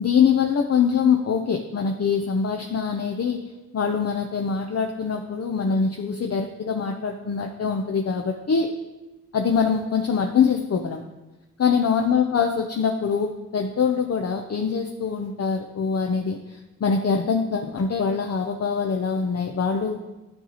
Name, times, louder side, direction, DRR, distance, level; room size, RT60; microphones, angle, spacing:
voice 1, 0.0-3.4 3.7-8.7 9.3-11.0 11.6-20.0, left 6 dB, 50° left, 3 dB, 0.5 m, -23 dB
10.0 x 4.1 x 2.9 m, 1.1 s
cardioid pair, 45°, 33 cm